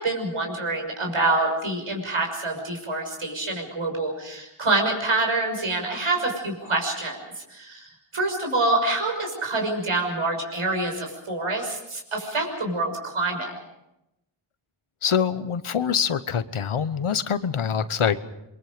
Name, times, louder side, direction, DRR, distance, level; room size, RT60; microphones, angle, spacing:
voice 1, 0.0-13.5, right 2 dB, 80° right, 2 dB, 6.3 m, -26 dB
voice 2, 15.0-18.2, left 7 dB, 80° left, 13 dB, 1.1 m, -24 dB
28.0 x 23.0 x 5.2 m, 0.89 s
wide cardioid pair, 75°, 49 cm